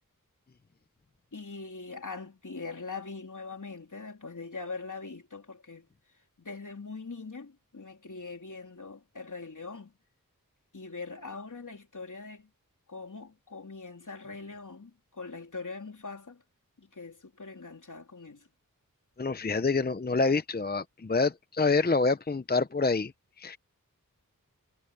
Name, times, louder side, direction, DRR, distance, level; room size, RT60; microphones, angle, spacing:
voice 1, 1.3-5.9 6.4-9.9 10.7-12.5 12.9-16.4 16.8-18.5, left 4 dB, 60° left, 3.4 m, -42 dB
voice 2, 19.2-23.1 23.4-23.6, left 3 dB, 30° left, 0.6 m, -27 dB
wide cardioid pair, 65°, 34 cm